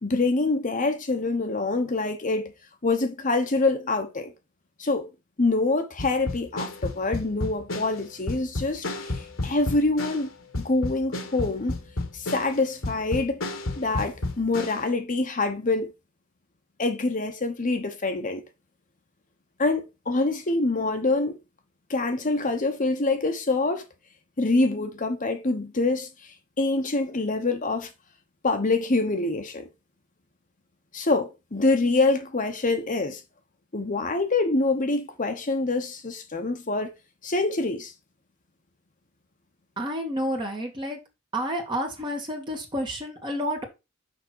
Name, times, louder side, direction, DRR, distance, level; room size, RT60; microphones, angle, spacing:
voice 1, 0.0-2.5 2.8-4.3 4.8-5.1 5.4-10.3 10.6-11.7 12.1-13.4 13.8-15.9 16.8-18.4 19.6-21.4 21.9-23.8 24.4-27.9 28.4-29.6 30.9-33.2 33.7-36.9 37.2-37.9, left 3 dB, 40° left, 1.0 m, -25 dB
sound 1, 6.0-14.9, left 2 dB, 70° left, 1.5 m, -32 dB
voice 2, 39.8-41.0 41.3-43.6, equal, 25° right, 2.2 m, -30 dB
6.5 x 5.7 x 4.6 m
head